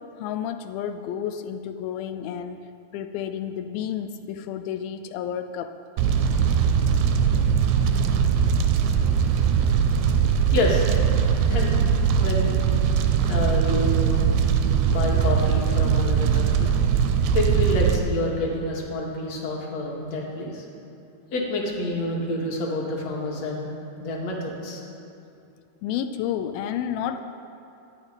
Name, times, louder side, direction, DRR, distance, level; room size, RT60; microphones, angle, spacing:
voice 1, 0.0-2.7 2.9-5.7 13.5-13.6 19.7-19.8 25.8-27.2, left 9 dB, 90° left, 8 dB, 2.1 m, -31 dB
Fire, 6.0-18.0, right 7 dB, 80° right, 2.9 m, -21 dB
voice 2, 10.5-10.9 11.5-11.8 12.2-12.6 13.3-14.3 14.9-16.7 17.3-20.6 21.3-23.7 24.0-24.8, left 1 dB, 45° left, -2 dB, 2.8 m, -28 dB
25.5 x 9.7 x 5.2 m, 2.7 s
omnidirectional pair, 5.0 m